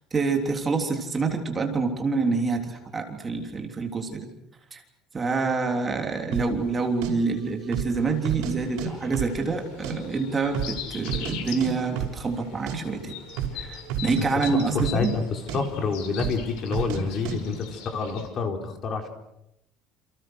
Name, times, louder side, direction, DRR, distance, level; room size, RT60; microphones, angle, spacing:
voice 1, 0.1-4.3 4.7-4.8 5.1-13.1 13.5-15.1, right 4 dB, 20° right, 3 dB, 3.4 m, -27 dB
sound 1, 6.3-6.5 7.0-7.1 7.6-8.0 8.2-8.9 9.1-9.9 10.2-10.3 10.5-11.4 11.6-11.7 12.0-12.2 12.5-12.8 13.3-13.6 13.9-14.2 14.4-15.2 15.5-15.6 16.2-16.4 16.7-17.0 17.3-17.4, right 9 dB, 75° right, 6.2 m, -30 dB
sound 2, 8.0-18.3, left 8 dB, 80° left, 6.6 m, -42 dB
voice 2, 14.5-19.1, left 5 dB, 35° left, 4 dB, 4.1 m, -28 dB
29.0 x 28.5 x 6.5 m, 0.85 s
cardioid pair, 160°, 0 cm